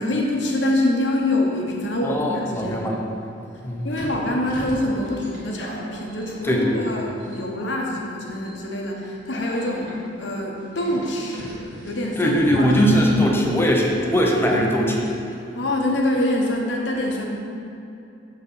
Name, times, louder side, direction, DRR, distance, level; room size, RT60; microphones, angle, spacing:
voice 1, 0.0-2.9 3.8-12.7 15.5-17.2, left 1 dB, 80° left, -1 dB, 1.1 m, -25 dB
voice 2, 2.0-3.0 3.6-3.9 6.4-6.9 12.2-15.1, equal, 15° left, -1 dB, 0.8 m, -20 dB
sound 1, 3.9-6.9 7.2-7.7 8.3-8.6 9.3-9.9 10.7-13.5 13.8-13.9 15.1-15.3, equal, 70° right, 1.8 m, -38 dB
7.7 x 4.1 x 5.6 m, 2.7 s
head